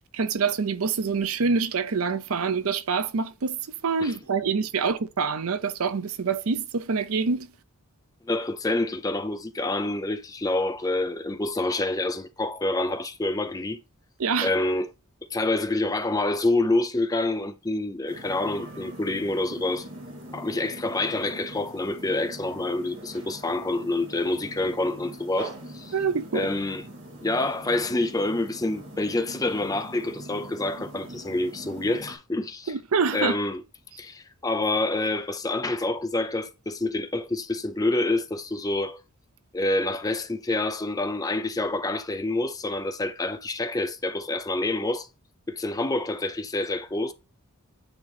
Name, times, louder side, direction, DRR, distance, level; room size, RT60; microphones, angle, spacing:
voice 1, 0.1-7.5 14.2-14.5 25.9-26.5 32.7-33.4, right 5 dB, 70° right, 0.6 m, -26 dB
voice 2, 8.3-13.8 14.4-14.9 15.3-19.9 20.3-25.9 26.3-26.8 27.2-32.7 33.1-33.6 34.0-39.0 39.5-45.1 45.5-47.1, left 2 dB, 15° left, 0.5 m, -27 dB
sound 1, 18.1-32.2, right 1 dB, 55° right, 2.6 m, -42 dB
8.9 x 3.0 x 4.1 m
head